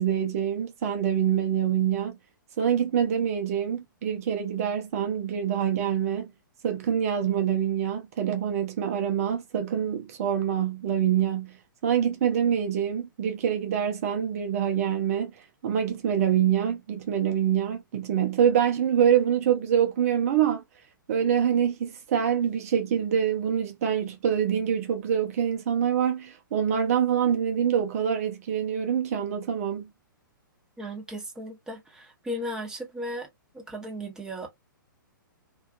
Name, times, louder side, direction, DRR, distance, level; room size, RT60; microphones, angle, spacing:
voice 1, 0.0-2.2 2.6-6.3 6.6-11.6 11.8-15.3 15.6-20.6 21.1-29.9, right 9 dB, 45° right, 0.5 m, -25 dB
voice 2, 30.8-33.3 33.5-34.5, equal, 5° right, 0.7 m, -36 dB
2.5 x 2.3 x 2.2 m
figure-of-eight pair, 115°, 11 cm